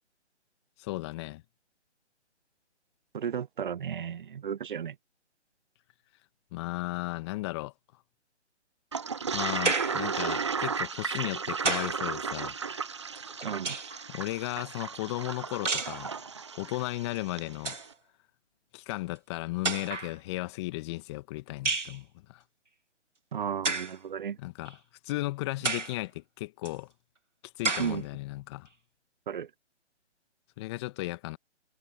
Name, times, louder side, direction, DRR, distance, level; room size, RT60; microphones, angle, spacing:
voice 1, 0.8-1.4 6.5-7.7 9.3-12.6 14.1-16.2 16.6-17.8 18.7-22.4 24.4-24.8 25.0-26.9 27.4-28.7 30.6-31.4, left 19 dB, 25° left, 1.6 m, -35 dB
voice 2, 3.1-5.0 13.4-13.8 23.3-24.4 27.8-28.0 29.3-29.5, right 8 dB, 45° right, 0.8 m, -34 dB
Toilet flush, 8.9-17.5, right 5 dB, 25° right, 0.4 m, -34 dB
sound 1, 9.7-10.1 11.2-12.0 13.2-14.1 15.7-16.0 17.2-17.3 17.5-17.9 18.9-19.0 19.6-20.2 21.7-22.0 23.6-24.0 24.7-24.8 25.6-26.0 26.7-26.8 27.6-28.0, right 3 dB, 85° right, 2.3 m, -31 dB
figure-of-eight pair, 145°, 35 cm